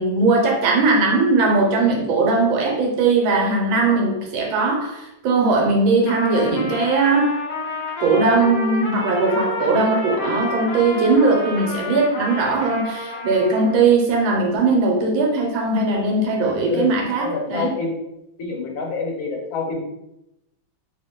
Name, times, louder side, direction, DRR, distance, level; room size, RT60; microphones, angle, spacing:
voice 1, 0.0-7.3 8.0-17.7, right 3 dB, 85° right, 0 dB, 1.6 m, -19 dB
Trumpet, 6.0-13.9, left 2 dB, 50° left, 1.1 m, -29 dB
voice 2, 17.2-18.0 18.4-19.8, left 4 dB, 80° left, 1 dB, 1.6 m, -27 dB
3.4 x 3.0 x 3.6 m, 0.85 s
omnidirectional pair, 2.1 m